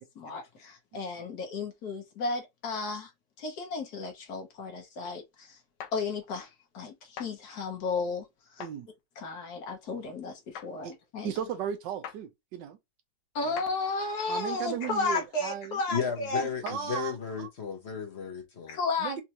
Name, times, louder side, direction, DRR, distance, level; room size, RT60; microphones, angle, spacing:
voice 1, 0.2-3.1 3.4-5.6 5.9-8.3 8.5-8.6 9.2-11.3 13.3-16.4 18.7-19.2, left 3 dB, 60° left, 1.5 m, -33 dB
sound 1, 5.8-6.0 7.2-7.3 8.6-8.8 10.6-10.7 12.0-12.2 13.6-13.7 15.2-15.3 16.7-16.8, left 8 dB, 80° left, 1.3 m, -41 dB
voice 2, 11.2-12.8 13.4-13.6 14.3-17.1 17.4-17.5 19.0-19.2, right 8 dB, 85° right, 1.4 m, -36 dB
voice 3, 15.9-18.8, left 6 dB, 45° left, 1.1 m, -34 dB
4.4 x 2.5 x 2.9 m
omnidirectional pair, 1.9 m